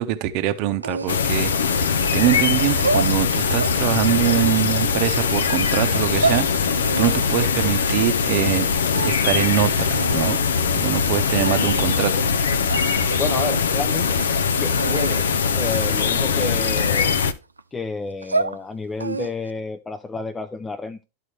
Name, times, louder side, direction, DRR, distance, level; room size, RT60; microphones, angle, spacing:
voice 1, 0.0-8.7 9.0-12.2, right 13 dB, 50° right, 0.7 m, -24 dB
sound 1, 0.8-2.2 2.7-3.8 4.2-5.3 5.9-6.4 6.8-8.6 8.9-9.5 9.9-10.4 11.0-11.1 11.4-12.0 12.3-12.4 12.7-12.8 13.3-13.7 14.0-14.2 14.8-15.2 15.6-16.0 16.4-17.6 18.1-18.6 19.0-19.5, right 3 dB, 90° right, 0.4 m, -28 dB
sound 2, 1.1-17.3, left 6 dB, 75° left, 0.5 m, -21 dB
voice 2, 13.2-17.1 17.7-21.0, left 3 dB, 15° left, 0.5 m, -30 dB
12.0 x 4.1 x 3.2 m
figure-of-eight pair, 85°, 0 cm